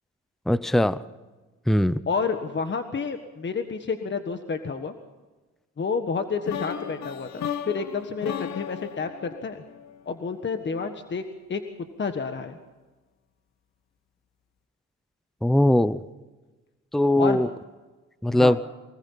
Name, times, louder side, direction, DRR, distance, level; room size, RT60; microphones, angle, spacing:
voice 1, 0.5-1.0 1.7-2.0 15.4-16.0 16.9-17.5 18.2-18.6, left 1 dB, ahead, 16 dB, 0.7 m, -20 dB
voice 2, 2.1-4.9 5.8-9.6 10.0-11.2 11.5-11.6 12.0-12.6 17.2-17.4 18.3-18.6, left 5 dB, 40° left, 7 dB, 1.5 m, -29 dB
sound 1, 6.5-10.4, left 9 dB, 65° left, 1.1 m, -35 dB
24.0 x 20.0 x 5.7 m, 1.2 s
cardioid pair, 90°, 30 cm